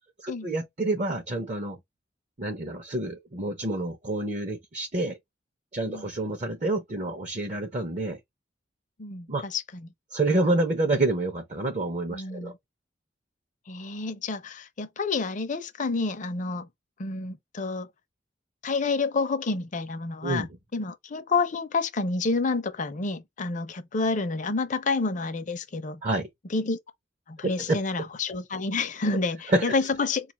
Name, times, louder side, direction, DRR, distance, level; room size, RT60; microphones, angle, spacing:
voice 1, 0.2-1.8 2.4-5.2 5.7-8.2 9.3-9.4 10.1-12.5 20.2-20.5 26.0-26.3 27.6-28.1 29.5-29.7, right 2 dB, 40° right, 0.7 m, -28 dB
voice 2, 9.0-9.9 12.1-12.5 13.7-16.7 17.0-17.9 18.6-26.0 26.5-26.8 27.3-30.3, left 3 dB, 45° left, 0.6 m, -29 dB
4.5 x 2.4 x 2.9 m
head